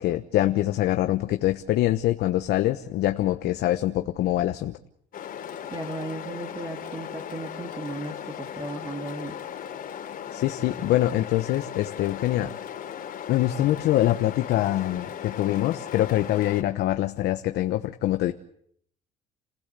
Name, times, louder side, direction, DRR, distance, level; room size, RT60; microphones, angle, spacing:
voice 1, 0.0-4.8 10.3-12.5 13.3-18.3, left 14 dB, 75° left, 7 dB, 1.2 m, -24 dB
sound 1, 5.1-16.6, left 9 dB, 60° left, 3.2 m, -37 dB
voice 2, 5.6-9.3, right 2 dB, 20° right, 2 dB, 2.9 m, -36 dB
30.0 x 16.5 x 8.4 m, 0.68 s
cardioid pair, 110°, 17 cm